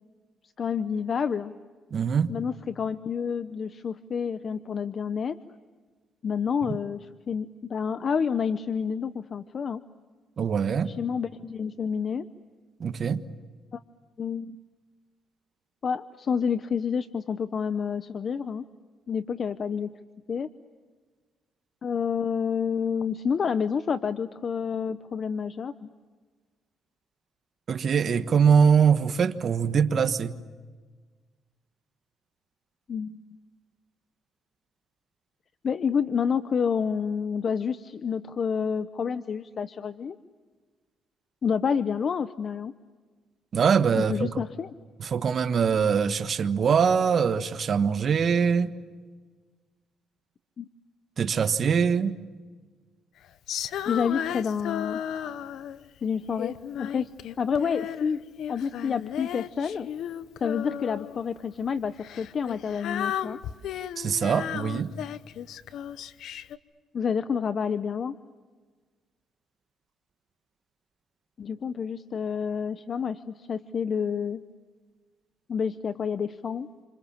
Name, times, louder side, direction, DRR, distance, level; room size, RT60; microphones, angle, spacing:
voice 1, 0.6-1.5 2.3-5.4 6.2-9.8 10.9-12.3 13.7-13.8 14.2-14.6 15.8-18.6 19.1-19.9 20.3-20.5 21.8-25.9 32.9-33.2 35.6-40.2 41.4-42.7 43.9-44.7 50.6-50.7 53.9-55.0 56.0-57.1 57.4-58.2 58.5-59.9 60.4-63.4 66.9-68.2 71.4-74.4 75.5-76.7, left 6 dB, 50° left, 0.9 m, -29 dB
voice 2, 1.9-2.3 10.4-10.9 12.8-13.2 27.7-30.4 43.5-44.3 45.0-48.7 51.2-52.1 64.0-64.9, right 6 dB, 50° right, 1.4 m, -23 dB
Female singing, 53.5-55.9 56.4-58.1 58.4-61.2 62.0-66.6, left 10 dB, 80° left, 0.9 m, -34 dB
29.0 x 27.0 x 7.3 m
cardioid pair, 90°, 0 cm